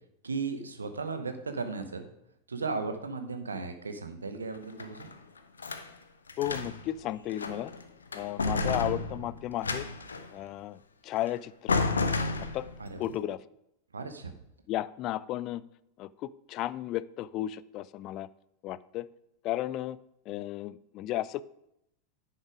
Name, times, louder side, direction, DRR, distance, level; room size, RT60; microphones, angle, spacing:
voice 1, 0.2-2.1 2.5-5.1 12.8-13.1 13.9-14.3, right 4 dB, 75° right, 8 dB, 1.0 m, -36 dB
sound 1, 4.5-5.9 6.3-6.9 7.3-7.8 8.1-10.3 11.2-11.3 11.7-12.9, left 3 dB, 75° left, 0.8 m, -31 dB
voice 2, 6.4-7.7 8.1-9.9 10.3-11.8 12.4-12.7 13.0-13.4 14.7-15.6 16.0-18.3 18.6-19.1 19.4-20.0 20.3-21.4, left 13 dB, 35° left, 18 dB, 0.4 m, -34 dB
10.5 x 5.8 x 5.0 m, 0.82 s
figure-of-eight pair, 90°, 0 cm